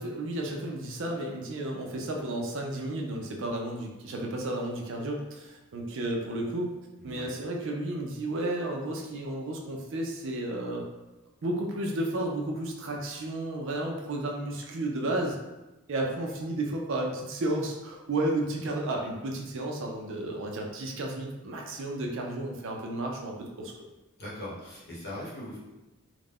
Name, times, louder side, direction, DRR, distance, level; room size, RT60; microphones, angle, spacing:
voice 1, 0.0-6.7 7.0-10.9 11.4-15.4 15.9-23.7, right 1 dB, 60° right, 1 dB, 0.4 m, -32 dB
voice 2, 7.0-7.3 24.2-25.6, left 1 dB, 50° left, -7 dB, 0.9 m, -40 dB
2.4 x 2.1 x 3.4 m, 1.1 s
head